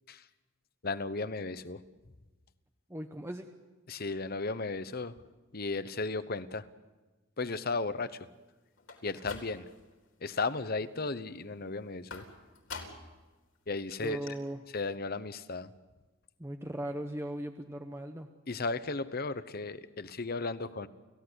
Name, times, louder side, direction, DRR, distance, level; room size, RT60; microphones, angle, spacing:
voice 1, 0.8-1.8 3.9-5.1 5.5-6.7 7.4-8.2 9.0-9.7 10.2-12.2 13.7-14.2 14.7-15.7 18.5-20.9, left 3 dB, 45° left, 13 dB, 1.0 m, -35 dB
voice 2, 2.9-3.5 14.0-14.6 16.4-18.3, right 1 dB, 15° right, 5 dB, 1.0 m, -38 dB
sound 1, 8.8-9.9 10.3-10.8 12.1-13.2 13.6-13.7 13.9-14.0 14.3-14.4, left 4 dB, 70° left, 3.9 m, -45 dB
29.5 x 16.0 x 8.2 m, 1.2 s
head